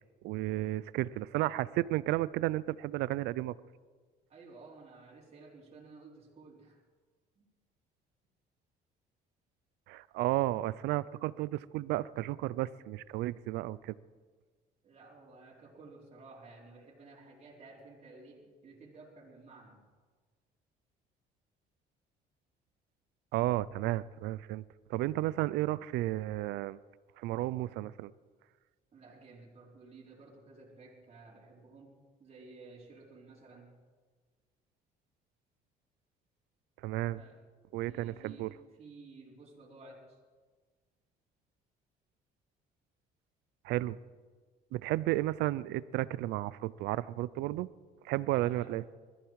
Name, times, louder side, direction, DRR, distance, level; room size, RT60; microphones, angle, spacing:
voice 1, 0.2-3.5 9.9-13.9 23.3-24.6 24.9-26.8 27.2-28.1 36.8-37.2 37.7-38.5 43.6-44.0 44.7-47.7 48.0-48.8, right 16 dB, 85° right, 19 dB, 0.5 m, -33 dB
voice 2, 4.3-6.8 7.3-7.4 14.8-19.8 28.9-33.8 37.1-37.4 37.7-38.5 38.8-40.2 48.3-48.8, right 3 dB, 40° right, -4 dB, 4.3 m, -54 dB
21.0 x 14.0 x 4.8 m, 1.4 s
cardioid pair, 110°, 17 cm